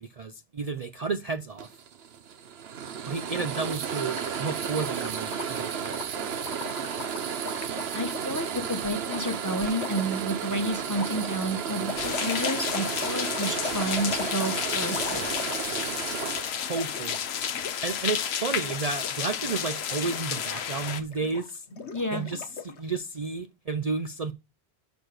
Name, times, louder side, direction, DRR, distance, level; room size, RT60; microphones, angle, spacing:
voice 1, 0.0-1.7 3.1-5.9 16.6-17.3 17.8-21.6 22.1-24.3, right 4 dB, 45° right, 0.6 m, -32 dB
sound 1, 1.6-17.1, right 7 dB, 70° right, 1.0 m, -33 dB
Gurgling, 3.8-8.4 9.1-9.2 9.8-10.1 10.9-16.3 16.6-17.8 18.0-18.2 18.6-19.1 19.4-22.8, left 5 dB, 90° left, 1.4 m, -40 dB
voice 2, 7.9-15.3 21.9-22.2, right 1 dB, 20° left, 1.0 m, -30 dB
sound 2, 12.0-21.0, left 8 dB, 75° left, 1.0 m, -31 dB
6.7 x 6.1 x 5.0 m
omnidirectional pair, 1.1 m